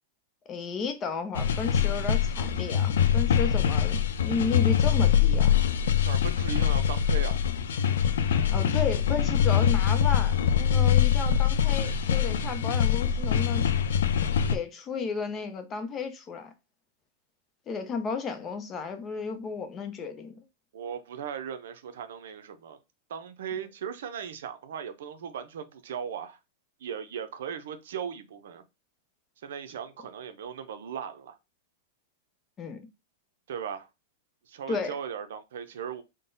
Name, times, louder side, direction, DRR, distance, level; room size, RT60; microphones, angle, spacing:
voice 1, 0.5-5.5 8.5-13.7 14.5-16.5 17.7-20.4 32.6-32.8 34.7-35.0, left 5 dB, 20° left, 0.6 m, -33 dB
sound 1, 1.3-14.6, left 8 dB, 90° left, 0.5 m, -24 dB
voice 2, 6.1-7.4 20.7-22.8 23.1-26.4 26.8-28.6 29.4-31.4 33.5-33.9 34.5-36.0, right 8 dB, 75° right, 0.7 m, -37 dB
3.8 x 2.2 x 3.9 m
supercardioid pair, 155°, 0 cm